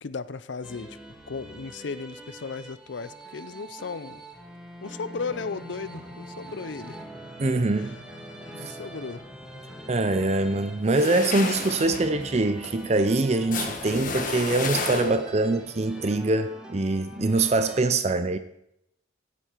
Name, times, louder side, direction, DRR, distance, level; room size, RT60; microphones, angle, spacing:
voice 1, 0.0-1.0 1.3-4.2 4.8-7.0 7.4-8.0 8.5-9.2, left 4 dB, 80° left, 0.6 m, -36 dB
sound 1, 0.6-17.8, right 1 dB, 5° right, 1.6 m, -44 dB
sound 2, 5.1-10.6, left 1 dB, 25° left, 2.1 m, -50 dB
voice 2, 7.4-8.0 8.6-8.7 9.9-18.4, right 2 dB, 35° right, 0.6 m, -24 dB
sound 3, 10.8-15.5, left 3 dB, 45° left, 1.4 m, -32 dB
15.5 x 8.5 x 4.6 m
head